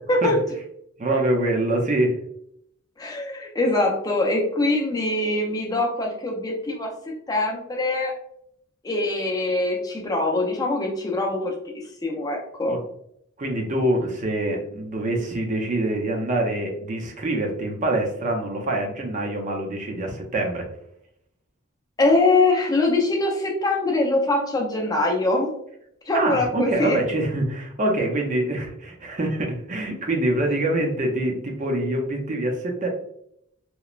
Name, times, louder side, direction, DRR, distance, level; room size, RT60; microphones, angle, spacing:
voice 1, 1.0-2.2 12.7-12.8 13.4-20.7 26.1-32.9, right 1 dB, 35° right, 1 dB, 0.5 m, -25 dB
voice 2, 3.0-6.9 7.3-8.1 8.8-11.6 12.0-12.8 22.0-25.5 26.1-27.0, left 2 dB, 20° left, 0 dB, 0.5 m, -23 dB
2.9 x 2.1 x 2.3 m, 0.73 s
head